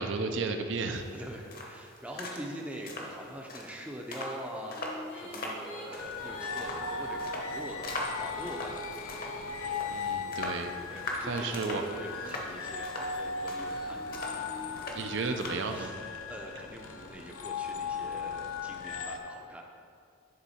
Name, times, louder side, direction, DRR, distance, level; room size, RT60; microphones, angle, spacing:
voice 1, 0.0-1.0 9.9-10.7 11.3-11.8 14.9-15.9, right 4 dB, 60° right, 6 dB, 0.4 m, -33 dB
sound 1, 0.9-15.9, left 1 dB, 45° left, 0.9 m, -42 dB
voice 2, 1.1-8.8 10.9-14.4 15.6-15.9 16.3-19.7, equal, 5° right, 0 dB, 0.5 m, -43 dB
Female singing, 4.6-11.2 11.9-15.6, right 1 dB, 65° left, 1.3 m, -46 dB
sound 2, 6.0-19.2, left 5 dB, 85° left, 0.5 m, -38 dB
10.0 x 3.6 x 4.2 m, 2.3 s
head